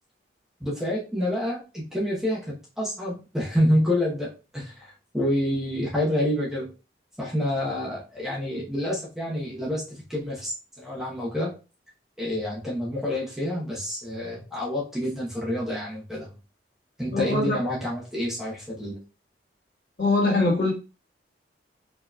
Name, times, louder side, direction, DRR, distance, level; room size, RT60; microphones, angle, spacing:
voice 1, 0.6-6.7 7.2-11.5 12.2-16.3 17.0-18.9, left 1 dB, ahead, -5 dB, 0.9 m, -28 dB
voice 2, 17.1-17.6 20.0-20.7, left 2 dB, 60° left, -2 dB, 1.8 m, -22 dB
4.4 x 2.9 x 2.3 m, 0.32 s
head